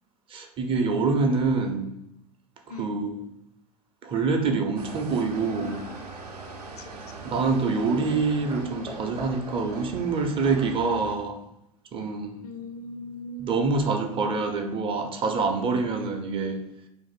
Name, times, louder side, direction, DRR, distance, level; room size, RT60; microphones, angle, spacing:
voice 1, 0.3-1.9 2.8-3.1 4.0-5.8 7.2-11.4 11.9-12.4 13.4-16.6, right 4 dB, 25° right, 4 dB, 0.5 m, -26 dB
voice 2, 2.7-3.0 5.5-7.0 12.4-13.9, equal, 70° left, 8 dB, 0.4 m, -40 dB
sound 1, 4.8-11.2, right 3 dB, 80° right, 0.5 m, -41 dB
2.5 x 2.4 x 3.9 m, 0.82 s
figure-of-eight pair, 80°, 20 cm